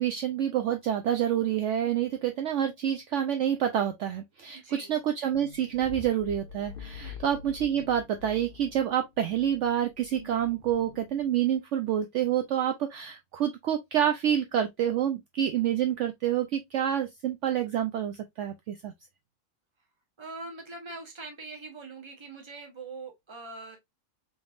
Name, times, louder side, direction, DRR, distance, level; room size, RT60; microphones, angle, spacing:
voice 1, 0.0-18.9, right 10 dB, 65° right, 0.8 m, -28 dB
voice 2, 4.5-4.9 7.0-7.2 20.2-23.8, right 3 dB, 20° right, 1.0 m, -42 dB
sound 1, 5.3-11.5, left 6 dB, 50° left, 0.8 m, -46 dB
4.1 x 3.4 x 2.4 m
omnidirectional pair, 1.5 m